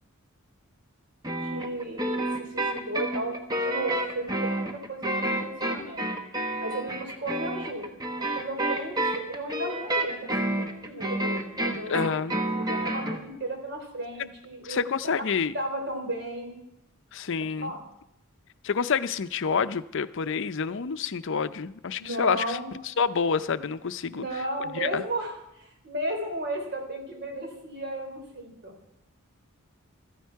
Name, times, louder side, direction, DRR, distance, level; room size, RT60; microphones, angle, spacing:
sound 1, 1.2-13.2, right 1 dB, 20° right, 1.3 m, -29 dB
voice 1, 1.4-3.4 3.6-6.1 6.6-10.5 10.9-11.9 12.4-14.8 15.5-16.6 17.6-17.8 22.0-22.7 24.1-28.7, right 1 dB, 55° right, 3 dB, 3.7 m, -34 dB
voice 2, 11.9-12.4 14.6-15.5 17.1-17.7 18.6-22.6 23.0-24.3 24.7-25.0, left 6 dB, 60° left, 13 dB, 0.6 m, -28 dB
16.0 x 14.0 x 4.7 m, 0.82 s
head